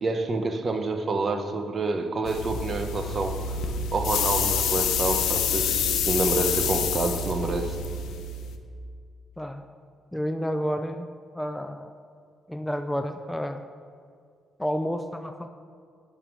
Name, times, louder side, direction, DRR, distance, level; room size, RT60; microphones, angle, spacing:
voice 1, 0.0-3.4 3.9-7.8, right 3 dB, 40° right, 6 dB, 1.0 m, -28 dB
sound 1, 2.2-8.6, left 5 dB, 80° left, 0.8 m, -27 dB
voice 2, 10.1-11.1 11.3-11.9 12.5-13.6 14.6-15.5, equal, 5° left, 7 dB, 0.4 m, -30 dB
11.0 x 5.7 x 6.1 m, 2.2 s
cardioid pair, 90°, 0 cm